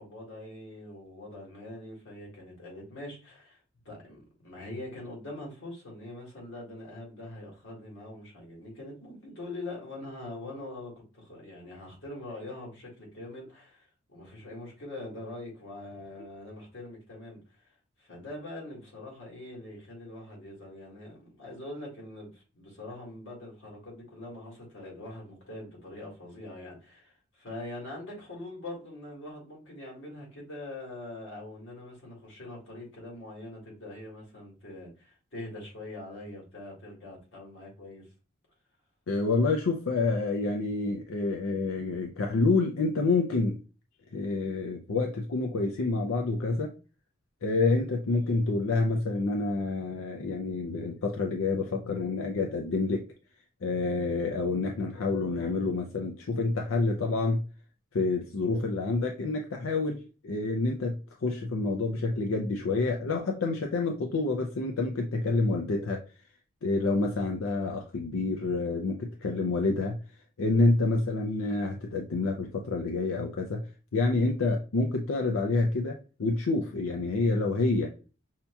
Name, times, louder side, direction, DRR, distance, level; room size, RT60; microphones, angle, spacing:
voice 1, 0.0-17.7 18.0-38.1, left 1 dB, 60° left, 2.0 m, -43 dB
voice 2, 39.1-43.6 44.1-46.7 47.4-53.0 53.6-57.4 57.9-61.0 61.2-66.0 66.6-70.0 70.4-73.6 73.9-77.9, left 3 dB, 85° left, 0.5 m, -28 dB
5.6 x 2.8 x 2.3 m
head